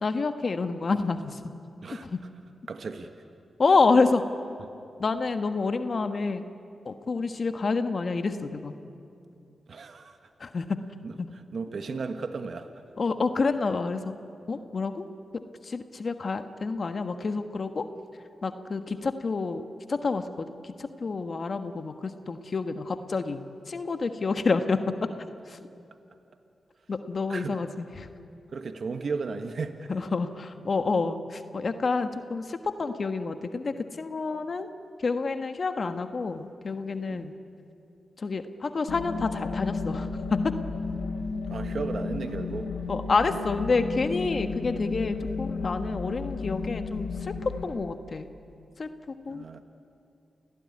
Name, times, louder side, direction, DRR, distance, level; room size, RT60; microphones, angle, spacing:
voice 1, 0.0-1.5 2.1-2.2 3.6-4.2 5.0-6.4 6.8-8.8 10.4-10.8 11.2-11.3 13.0-14.1 14.5-15.1 15.6-17.9 18.4-19.6 19.9-25.1 25.5-25.6 26.9-28.1 29.9-34.7 35.0-37.3 38.2-40.4 42.9-48.3 48.8-48.9 49.2-49.4, left 4 dB, 55° left, 8 dB, 1.4 m, -28 dB
voice 2, 2.7-3.1 9.7-10.2 11.0-12.7 27.3-27.6 28.5-29.9 37.1-37.3 41.5-42.7 49.3-49.6, right 4 dB, 65° right, 7 dB, 1.3 m, -35 dB
sound 1, 38.9-47.6, left 4 dB, 90° left, 3.9 m, -33 dB
29.0 x 17.5 x 9.7 m, 2.6 s
supercardioid pair, 40°, 0 cm